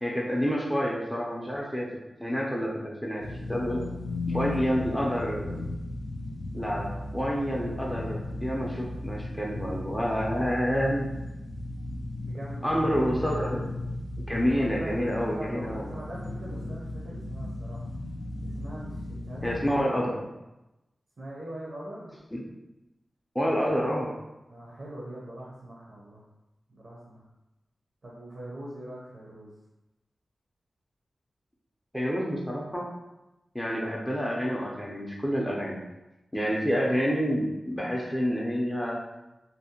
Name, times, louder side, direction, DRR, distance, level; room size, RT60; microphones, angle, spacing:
voice 1, 0.0-1.9 2.2-3.8 4.3-5.6 6.5-11.1 12.6-13.7 14.2-15.8 19.4-20.3 22.3-22.5 23.3-24.1 31.9-32.9 33.5-35.8 36.3-39.0, equal, 5° left, -3 dB, 0.4 m, -28 dB
sound 1, 3.2-19.8, left 2 dB, 85° left, 0.3 m, -36 dB
voice 2, 3.6-4.0 4.3-5.1 12.2-12.9 14.5-17.8 18.4-20.3 21.2-22.2 24.5-26.2 26.7-27.2 28.0-29.5 33.6-33.8, right 1 dB, 60° right, -6 dB, 0.6 m, -42 dB
2.6 x 2.0 x 2.7 m, 0.97 s
wide cardioid pair, 90°, 0 cm